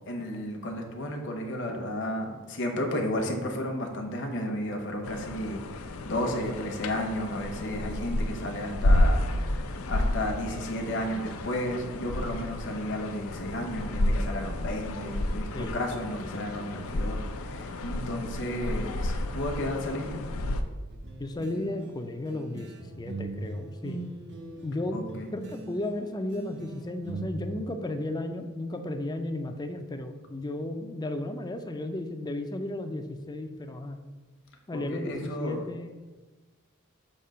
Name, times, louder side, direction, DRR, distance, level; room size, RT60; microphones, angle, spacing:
voice 1, 0.1-20.2 24.9-25.3 34.7-35.7, left 1 dB, 60° left, 3 dB, 0.9 m, -33 dB
sound 1, 5.0-20.6, left 1 dB, 80° left, 0.5 m, -31 dB
sound 2, 20.9-27.3, right 2 dB, 55° right, 0.8 m, -41 dB
voice 2, 21.2-24.0 24.6-25.0 25.3-34.0 34.7-35.9, left 1 dB, 20° left, 6 dB, 0.4 m, -34 dB
6.7 x 2.8 x 5.6 m, 1.3 s
head